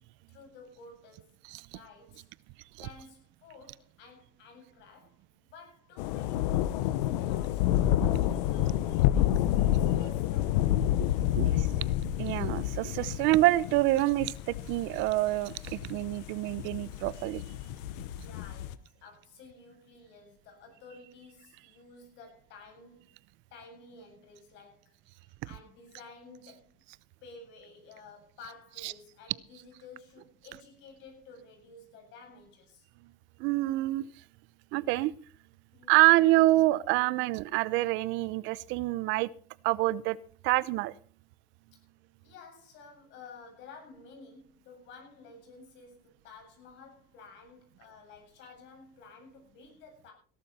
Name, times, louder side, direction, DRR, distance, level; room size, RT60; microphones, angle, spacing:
voice 1, 0.3-1.4 1.7-2.3 2.8-9.5 9.8-11.8 18.1-23.1 23.5-26.8 27.2-32.9 35.7-36.0 41.7-41.8 42.2-50.1, left 4 dB, 65° left, 8.0 m, -52 dB
sound 1, 6.0-18.8, left 12 dB, 85° left, 0.9 m, -29 dB
voice 2, 11.3-11.7 12.2-17.4 28.8-28.9 33.4-34.1 34.7-35.1 35.9-39.3 39.6-40.2 40.4-40.9, right 18 dB, 65° right, 0.7 m, -26 dB
17.5 x 12.0 x 4.3 m
supercardioid pair, 110°, 20 cm